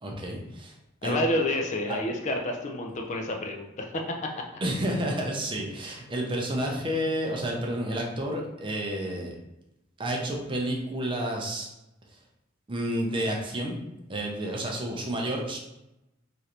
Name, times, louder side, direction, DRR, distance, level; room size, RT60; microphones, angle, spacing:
voice 1, 0.0-0.7 1.0-1.2 1.9-2.0 4.6-9.3 10.0-11.7 12.7-13.8 14.1-15.6, right 1 dB, 25° right, 0 dB, 0.5 m, -30 dB
voice 2, 1.0-4.1, left 1 dB, 40° left, 2 dB, 0.4 m, -29 dB
3.1 x 2.5 x 2.9 m, 0.92 s
head